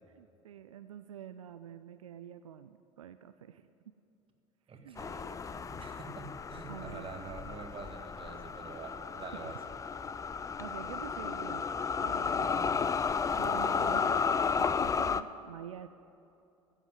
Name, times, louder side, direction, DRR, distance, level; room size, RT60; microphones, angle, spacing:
voice 1, 0.1-3.7 4.7-5.0 6.7-7.1 9.4-9.5 10.6-11.7 12.0-12.9 13.4-15.9, right 10 dB, 85° right, 11 dB, 0.4 m, -47 dB
voice 2, 4.7-9.6, right 4 dB, 35° right, 4 dB, 1.9 m, -46 dB
sound 1, 5.0-15.2, left 6 dB, 20° left, 0.4 m, -33 dB
14.5 x 7.2 x 9.2 m, 2.7 s
figure-of-eight pair, 65°, 17 cm